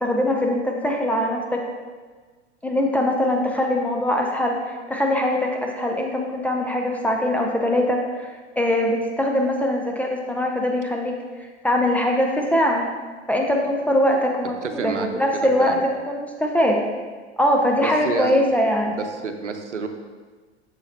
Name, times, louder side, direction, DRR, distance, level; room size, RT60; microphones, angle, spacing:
voice 1, 0.0-1.7 2.6-8.3 8.6-12.9 13.3-15.8 16.1-16.8 17.4-19.0, left 1 dB, 5° left, 0 dB, 0.3 m, -22 dB
voice 2, 14.6-15.1 15.3-15.8 17.8-18.4 18.9-19.9, right 5 dB, 90° right, 6 dB, 0.7 m, -29 dB
7.2 x 6.8 x 2.6 m, 1.4 s
hypercardioid pair, 100°, 35 cm